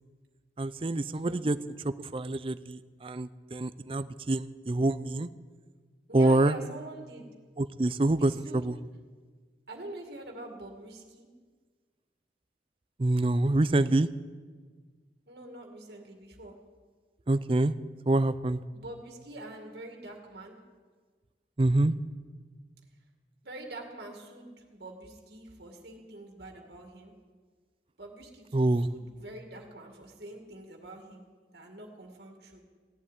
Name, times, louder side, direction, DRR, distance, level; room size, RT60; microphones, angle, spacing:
voice 1, 0.6-1.6 1.8-5.3 6.1-6.6 7.6-8.8 13.0-14.1 17.3-17.7 18.1-18.6 21.6-22.0 28.5-28.9, right 2 dB, 30° right, 14 dB, 0.5 m, -26 dB
voice 2, 1.2-1.6 6.1-7.3 8.1-8.6 9.7-11.3 15.3-16.6 18.7-20.6 23.4-27.1 28.0-31.2 31.5-32.6, right 2 dB, 65° right, 2 dB, 2.2 m, -45 dB
16.5 x 7.7 x 10.0 m, 1.5 s
head